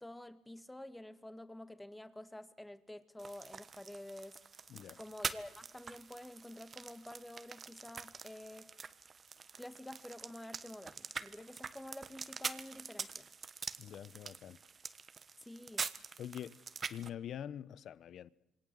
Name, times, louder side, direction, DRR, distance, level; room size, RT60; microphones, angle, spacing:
voice 1, 0.0-4.4 5.0-8.7 9.6-13.3 15.4-15.9, left 1 dB, 10° left, 2.1 m, -49 dB
sound 1, 3.2-17.1, right 5 dB, 40° right, 1.4 m, -45 dB
voice 2, 13.8-14.6 16.2-16.6 16.9-18.3, left 10 dB, 65° left, 1.0 m, -45 dB
27.0 x 23.0 x 7.9 m
cardioid pair, 85°, 0 cm